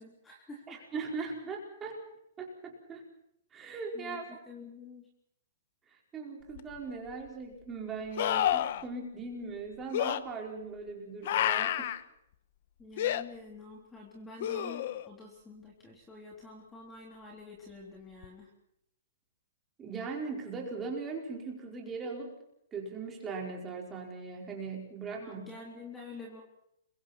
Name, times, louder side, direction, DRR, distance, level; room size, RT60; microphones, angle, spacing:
voice 1, 0.0-0.8 1.9-2.0 3.9-5.1 12.8-18.5 25.2-26.4, left 3 dB, 10° left, -1 dB, 3.7 m, -48 dB
voice 2, 0.7-1.9 2.4-3.0 3.5-4.4 5.9-11.9 19.8-22.4 22.7-25.4, right 4 dB, 15° right, 0 dB, 4.9 m, -39 dB
sound 1, 6.6-6.7 8.2-8.8 9.9-10.2 11.3-12.0 13.0-13.2 14.4-15.1 18.2-18.3, left 11 dB, 45° left, 1.2 m, -29 dB
29.5 x 23.5 x 4.5 m, 0.75 s
hypercardioid pair, 165°, 0 cm